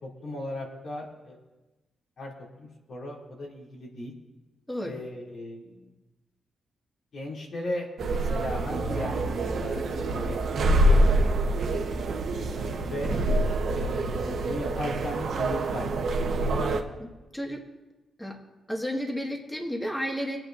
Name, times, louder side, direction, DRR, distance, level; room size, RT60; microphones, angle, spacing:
voice 1, 0.0-1.4 2.2-2.3 2.6-4.1 4.8-5.9 7.1-11.4 11.9-13.1 13.7-16.5, left 1 dB, 70° left, -4 dB, 2.7 m, -37 dB
sound 1, 8.0-16.8, right 1 dB, 75° right, 1.0 m, -26 dB
voice 2, 17.0-17.6 18.2-18.4 18.7-20.4, equal, 10° left, 0 dB, 1.7 m, -32 dB
25.0 x 9.0 x 2.6 m, 1.1 s
cardioid pair, 80°, 0 cm